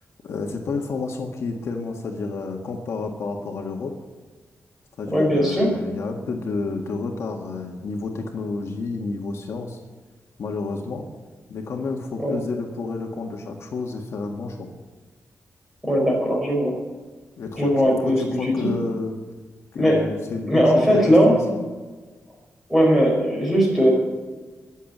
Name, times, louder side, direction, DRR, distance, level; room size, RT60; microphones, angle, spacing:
voice 1, 0.2-3.9 5.0-9.8 10.4-11.1 11.5-14.7 17.4-19.2 19.7-21.6, left 3 dB, 65° left, 2 dB, 1.7 m, -30 dB
voice 2, 5.1-5.7 12.2-12.3 15.8-16.7 17.6-18.7 19.7-20.0 20.5-21.4 22.7-23.9, equal, ahead, -1 dB, 5.1 m, -19 dB
21.5 x 7.5 x 7.4 m, 1.3 s
wide cardioid pair, 160°, 5 cm